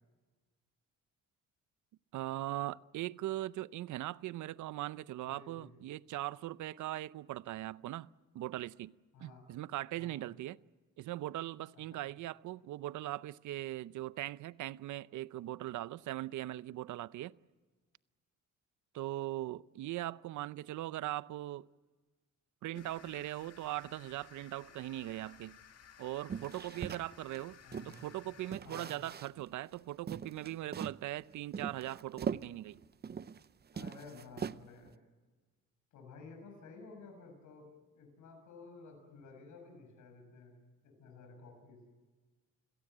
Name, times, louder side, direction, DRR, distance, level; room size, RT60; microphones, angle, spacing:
voice 1, 2.1-8.1 8.3-8.9 9.2-10.6 11.0-17.3 18.9-21.7 22.6-25.6 26.0-27.6 27.8-32.8, right 15 dB, 75° right, 0.6 m, -40 dB
voice 2, 5.2-5.7 9.1-9.5 10.0-10.2 11.7-12.0 27.6-28.1 28.6-28.9 33.7-34.9 35.9-37.7 37.9-40.6 40.8-41.8, left 4 dB, 80° left, 6.4 m, -53 dB
sound 1, 22.7-28.6, left 8 dB, 55° left, 1.9 m, -57 dB
sound 2, 26.3-28.1 28.5-29.5 29.7-29.8 30.1-31.0 31.5-33.4 33.7-34.9, right 7 dB, 35° right, 0.7 m, -41 dB
29.5 x 17.5 x 7.9 m
cardioid pair, 90°, 30 cm